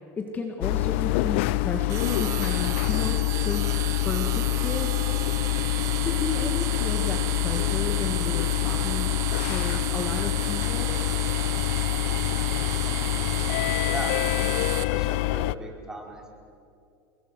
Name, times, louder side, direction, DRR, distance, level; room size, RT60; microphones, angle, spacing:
voice 1, 0.2-3.8 4.0-5.1 6.0-9.1 9.5-10.9, left 4 dB, 25° left, 3 dB, 2.2 m, -33 dB
sound 1, 0.6-15.5, left 19 dB, 80° left, 0.6 m, -26 dB
sound 2, 1.9-14.8, right 13 dB, 50° right, 1.3 m, -34 dB
voice 2, 13.9-14.2 14.7-16.3, right 1 dB, 10° right, -1 dB, 5.2 m, -38 dB
29.0 x 23.0 x 6.5 m, 2.5 s
supercardioid pair, 120°, 6 cm